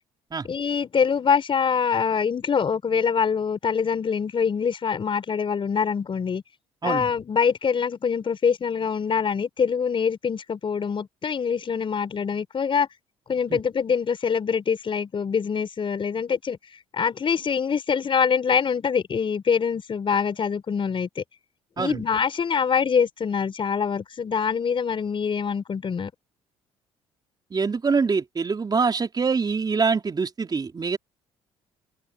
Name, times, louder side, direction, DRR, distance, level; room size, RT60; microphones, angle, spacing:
voice 1, 0.4-6.4 6.8-12.9 13.3-16.6 16.9-21.2 21.8-26.1, left 6 dB, 40° left, 5.3 m, -24 dB
voice 2, 27.5-31.0, right 5 dB, 35° right, 4.5 m, -24 dB
supercardioid pair, 70°, 13 cm